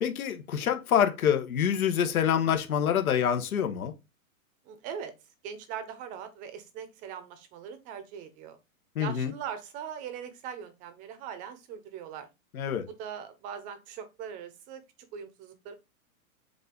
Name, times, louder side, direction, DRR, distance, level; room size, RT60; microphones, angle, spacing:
voice 1, 0.0-3.9 8.9-9.3 12.5-12.8, left 8 dB, 75° left, 1.3 m, -26 dB
voice 2, 4.6-5.1 5.4-8.6 9.0-12.3 13.0-14.8 15.1-15.7, right 8 dB, 20° right, 0.7 m, -41 dB
7.6 x 2.7 x 5.2 m
hypercardioid pair, 155°, 43 cm